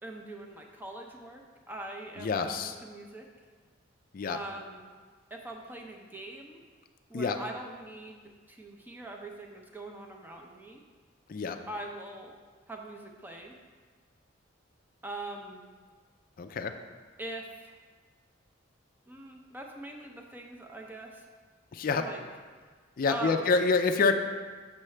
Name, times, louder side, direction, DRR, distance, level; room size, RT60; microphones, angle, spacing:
voice 1, 0.0-3.3 4.3-4.9 5.3-6.6 7.1-10.8 11.7-12.3 12.7-13.6 15.0-15.7 17.2-17.7 19.1-21.3 22.0-22.2 23.1-23.6, right 2 dB, 10° right, 1 dB, 0.6 m, -42 dB
voice 2, 2.2-2.8 4.1-4.4 7.1-7.4 11.3-11.6 16.4-16.7 21.7-22.0 23.0-24.1, left 4 dB, 45° left, 7 dB, 0.4 m, -27 dB
7.3 x 5.7 x 3.3 m, 1.5 s
head